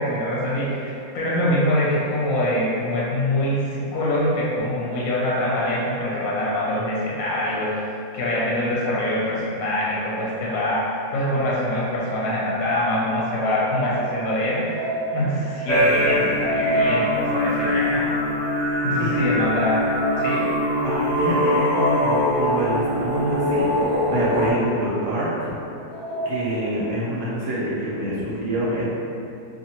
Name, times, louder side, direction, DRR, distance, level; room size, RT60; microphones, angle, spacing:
voice 1, 0.0-7.8 8.1-14.6 15.1-18.1 18.8-19.8 20.2-20.5, left 1 dB, 70° left, -5 dB, 0.9 m, -24 dB
sound 1, 13.9-24.7 25.2-25.3 25.9-26.4, right 1 dB, 5° left, 0.8 m, -30 dB
sound 2, 15.7-24.5, left 1 dB, 45° left, 0.6 m, -23 dB
voice 2, 20.8-25.6 26.2-28.9, right 1 dB, 60° right, -8 dB, 1.0 m, -26 dB
2.6 x 2.5 x 2.8 m, 2.7 s
omnidirectional pair, 1.7 m